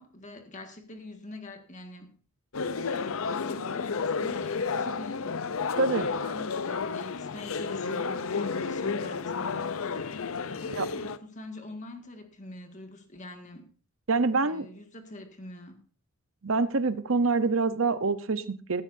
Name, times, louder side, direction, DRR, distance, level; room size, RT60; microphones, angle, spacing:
voice 1, 0.0-2.1 2.8-5.2 5.7-9.7 10.5-13.7 14.4-15.8, left 1 dB, 35° left, 1.9 m, -45 dB
sound 1, 2.5-11.2, left 5 dB, 70° left, 0.6 m, -31 dB
voice 2, 5.8-6.1 10.7-10.9 14.1-14.7 16.4-18.8, right 3 dB, 65° right, 0.8 m, -26 dB
17.0 x 13.0 x 2.7 m
head